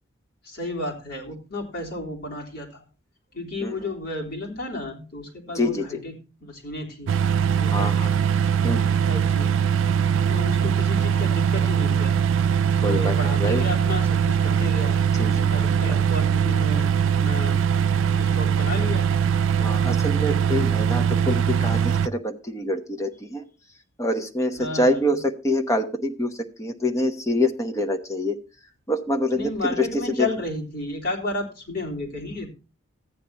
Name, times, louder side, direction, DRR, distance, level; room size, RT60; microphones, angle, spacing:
voice 1, 0.4-2.8 3.3-7.2 7.6-8.2 9.1-9.5 10.3-12.2 12.8-15.0 15.5-17.6 18.2-19.1 24.6-25.2 29.3-32.5, left 2 dB, 50° left, -1 dB, 3.6 m, -32 dB
voice 2, 5.5-5.9 7.7-8.1 8.6-9.1 12.8-13.6 15.2-15.5 19.6-23.4 24.0-26.3 26.6-28.4 28.9-29.5 29.8-29.9 30.2-30.3, left 1 dB, 15° left, 4 dB, 1.1 m, -25 dB
sound 1, 7.1-22.1, right 7 dB, 90° right, 0.4 m, -21 dB
14.5 x 9.4 x 2.9 m, 0.32 s
head